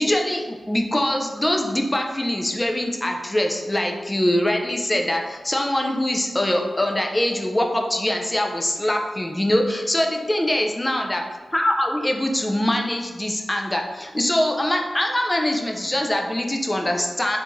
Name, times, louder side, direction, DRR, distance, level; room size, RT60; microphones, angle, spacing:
voice 1, 0.0-11.2 11.5-17.4, left 1 dB, 15° left, 2 dB, 0.4 m, -23 dB
3.5 x 2.6 x 2.9 m, 1.3 s
wide cardioid pair, 100°, 0 cm